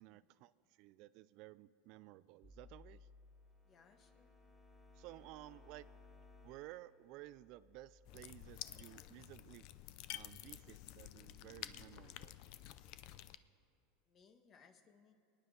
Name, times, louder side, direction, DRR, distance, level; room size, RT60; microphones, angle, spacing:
voice 1, 0.0-3.1 5.0-5.9 6.4-9.7 10.1-12.3, right 17 dB, 55° right, 17 dB, 0.3 m, -55 dB
sound 1, 2.4-8.7, left 3 dB, 5° left, 1.4 m, -62 dB
voice 2, 3.6-4.3 14.1-15.1, left 5 dB, 30° left, 7 dB, 1.3 m, -67 dB
sound 2, 8.1-13.4, left 14 dB, 55° left, 0.5 m, -51 dB
24.5 x 9.8 x 3.8 m, 2.9 s
supercardioid pair, 130°, 0 cm